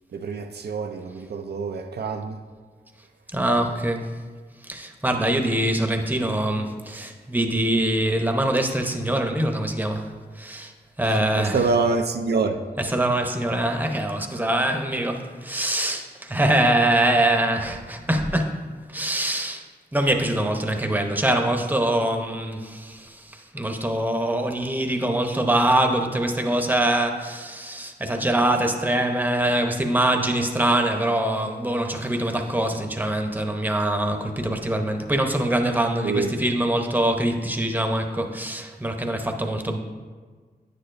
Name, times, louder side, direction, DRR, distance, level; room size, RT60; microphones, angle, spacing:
voice 1, 0.1-2.4 11.0-12.6 36.0-36.3, right 4 dB, 75° right, 0.5 m, -26 dB
voice 2, 3.3-4.1 4.6-10.7 11.0-11.6 12.8-19.6 19.9-39.8, right 1 dB, 10° right, 0.8 m, -24 dB
9.3 x 6.7 x 2.6 m
cardioid pair, 50°, 17 cm